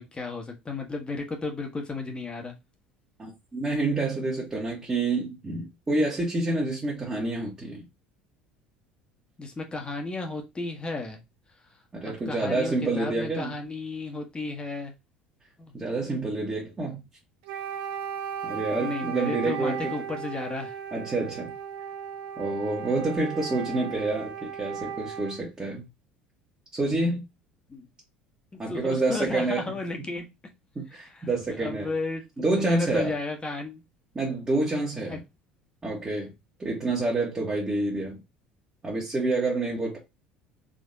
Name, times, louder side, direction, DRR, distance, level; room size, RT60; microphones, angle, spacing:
voice 1, 0.0-2.6 9.4-11.2 12.0-14.9 15.6-15.7 18.8-20.8 27.7-27.9 28.5-30.3 30.9-31.3 31.6-33.8 35.1-35.2, left 3 dB, 20° left, 1.2 m, -34 dB
voice 2, 3.2-7.8 11.9-13.5 15.7-17.0 18.4-19.9 20.9-21.5 22.4-25.8 26.7-27.2 28.6-29.6 30.7-31.9 32.4-33.1 34.1-35.2 35.8-36.3 36.6-38.2 38.8-40.0, right 2 dB, 20° right, 1.4 m, -28 dB
Wind instrument woodwind instrument, 17.4-25.5, right 7 dB, 65° right, 0.7 m, -36 dB
3.7 x 3.4 x 2.7 m
figure-of-eight pair, 65°, 5 cm